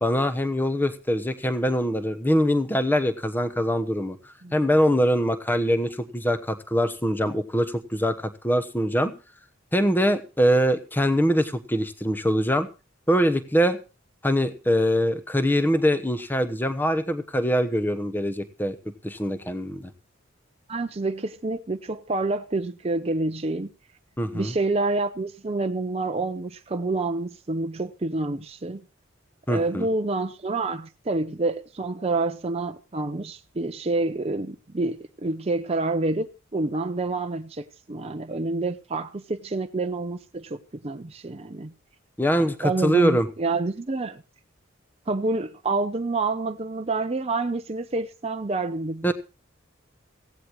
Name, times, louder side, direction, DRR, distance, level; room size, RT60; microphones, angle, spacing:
voice 1, 0.0-4.2 4.5-9.1 9.7-12.7 13.1-13.8 14.2-18.8 19.0-19.9 24.2-24.5 29.5-29.9 42.2-43.3 49.0-49.1, equal, 10° left, 1.0 m, -23 dB
voice 2, 20.7-23.7 24.3-28.8 29.5-41.7 42.4-44.2 45.1-49.1, right 3 dB, 30° right, 0.6 m, -28 dB
17.0 x 16.0 x 3.1 m
head